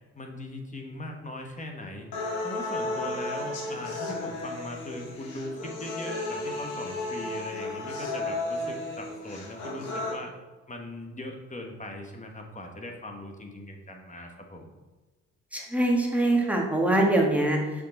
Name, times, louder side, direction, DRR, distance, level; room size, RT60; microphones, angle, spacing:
voice 1, 0.1-2.1 2.4-10.3 10.7-14.7, left 1 dB, 25° left, 2 dB, 1.3 m, -40 dB
sound 1, 2.1-10.1, left 2 dB, 80° left, 2.0 m, -34 dB
voice 2, 15.5-17.9, right 1 dB, 5° right, -1 dB, 1.6 m, -24 dB
6.6 x 5.4 x 3.9 m, 1.2 s
cardioid pair, 75°, 30 cm